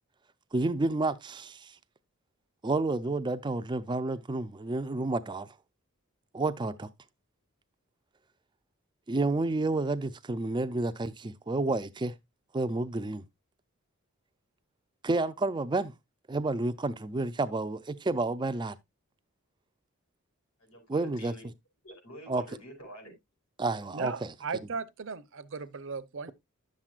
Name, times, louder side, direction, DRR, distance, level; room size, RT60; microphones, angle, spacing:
voice 1, 0.5-1.7 2.6-5.5 6.3-6.9 9.1-12.1 12.5-13.2 15.0-15.9 16.3-18.8 20.9-21.3 22.3-22.4 23.6-24.3, right 2 dB, 20° right, 0.4 m, -30 dB
voice 2, 20.6-21.4 21.8-23.1, equal, 85° left, 5.2 m, -47 dB
voice 3, 23.9-26.3, right 5 dB, 60° right, 0.7 m, -37 dB
10.5 x 7.4 x 2.4 m
head